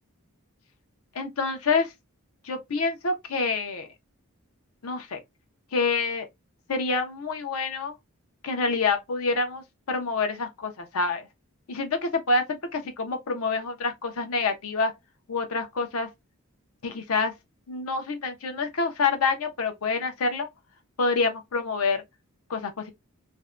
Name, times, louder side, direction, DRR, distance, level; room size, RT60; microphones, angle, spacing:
voice 1, 1.1-1.9 2.4-3.9 4.8-5.2 5.7-6.3 6.7-7.9 8.4-11.3 11.7-14.9 15.3-16.1 16.8-17.3 17.7-20.5 21.0-22.0 22.5-22.9, left 4 dB, 80° left, 0.7 m, -27 dB
2.6 x 2.1 x 2.3 m
head